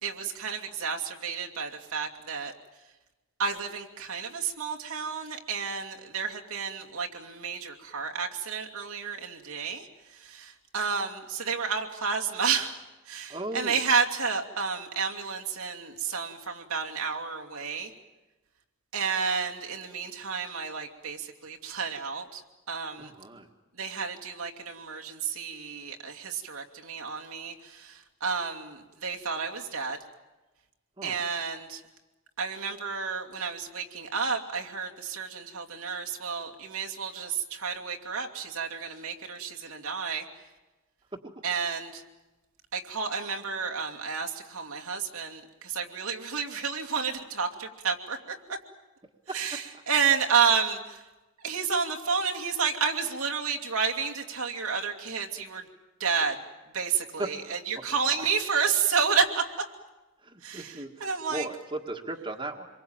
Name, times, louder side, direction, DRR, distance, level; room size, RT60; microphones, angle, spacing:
voice 1, 0.0-2.5 3.4-9.9 10.1-12.8 13.1-17.9 18.9-22.4 22.7-23.1 23.8-30.0 31.0-31.8 32.4-40.2 41.4-42.0 42.7-48.2 49.3-51.0 51.4-55.6 56.0-56.4 56.7-59.4 60.4-61.5, right 6 dB, 85° right, 1 dB, 2.8 m, -30 dB
voice 2, 13.3-13.8 23.0-23.5 31.0-31.2 41.1-41.4 49.3-49.4 49.7-49.8 57.2-57.4 58.1-58.3 60.2-62.7, right 2 dB, 25° right, 3 dB, 1.7 m, -37 dB
27.0 x 23.0 x 8.9 m, 1.1 s
head